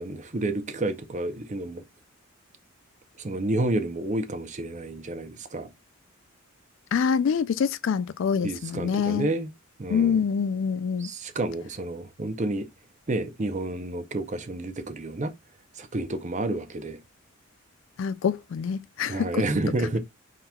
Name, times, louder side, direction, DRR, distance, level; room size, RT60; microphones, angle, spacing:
voice 1, 0.0-1.8 3.2-5.7 8.4-9.5 9.8-10.2 11.0-12.7 13.1-15.3 15.8-17.0 19.1-20.0, right 2 dB, 35° right, 0.6 m, -30 dB
voice 2, 6.9-9.3 9.9-11.1 18.0-19.5 19.8-19.9, left 6 dB, 65° left, 0.3 m, -26 dB
4.3 x 3.7 x 2.2 m
head